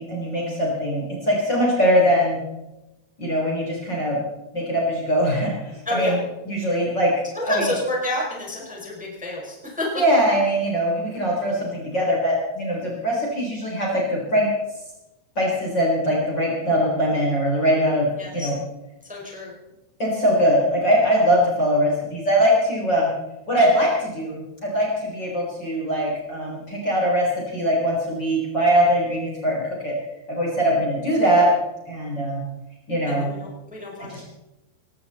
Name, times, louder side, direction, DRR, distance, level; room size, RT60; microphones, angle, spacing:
voice 1, 0.0-2.4 3.2-4.2 4.5-5.5 5.9-6.1 6.5-7.1 7.5-7.7 10.0-14.5 15.4-18.1 18.3-18.5 20.0-23.1 23.5-27.3 27.5-29.9 30.3-31.6 31.9-32.4 32.9-33.3 34.1-34.2, equal, 30° left, -3 dB, 4.1 m, -21 dB
voice 2, 5.8-6.2 7.3-10.0 18.2-18.5 19.1-19.5 33.1-34.2, left 1 dB, ahead, -2 dB, 4.1 m, -29 dB
19.5 x 17.0 x 4.1 m, 0.97 s
omnidirectional pair, 4.5 m